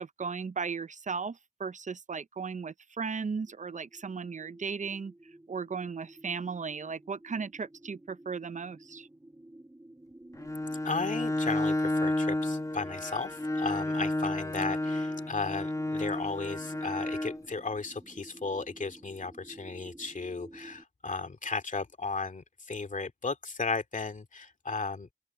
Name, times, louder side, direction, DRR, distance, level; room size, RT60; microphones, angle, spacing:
voice 1, 0.0-5.1 5.5-9.1, right 5 dB, 65° right, 0.6 m, -36 dB
sound 1, 3.5-20.8, right 1 dB, 20° right, 3.1 m, -53 dB
Bowed string instrument, 10.4-17.4, left 1 dB, 25° left, 1.1 m, -31 dB
voice 2, 10.8-25.1, left 4 dB, 70° left, 2.4 m, -35 dB
cardioid pair, 45°, 14 cm